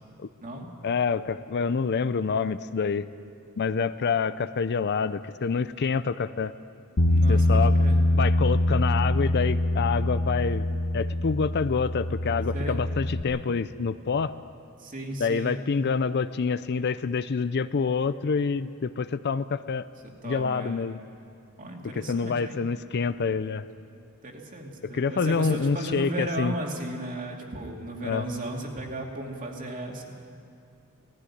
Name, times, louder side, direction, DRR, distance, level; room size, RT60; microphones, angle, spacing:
voice 1, 0.8-3.1 3.6-6.5 7.3-7.7 8.2-10.7 10.9-14.3 15.2-19.9 20.2-21.0 21.9-23.6 24.8-26.5 28.0-28.3, left 5 dB, 50° left, 14 dB, 0.5 m, -27 dB
Bass guitar, 7.0-13.2, left 1 dB, 75° left, 1.3 m, -24 dB
voice 2, 7.1-8.0 12.5-12.8 14.8-15.6 20.2-20.9 21.6-22.6 24.2-30.0, right 1 dB, 35° right, 1 dB, 2.5 m, -35 dB
18.5 x 15.0 x 9.9 m, 2.5 s
head